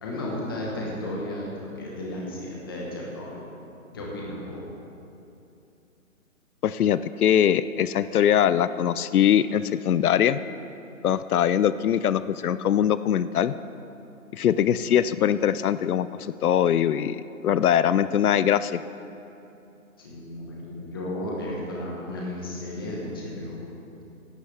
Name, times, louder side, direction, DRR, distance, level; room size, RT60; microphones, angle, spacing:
voice 1, 0.0-3.4 3.9-4.6 20.0-23.7, left 1 dB, 15° left, -4 dB, 1.3 m, -34 dB
voice 2, 6.6-10.4 11.0-13.5 14.3-18.8, left 9 dB, 90° left, 14 dB, 0.6 m, -22 dB
16.5 x 11.5 x 3.4 m, 2.8 s
hypercardioid pair, 175°, 43 cm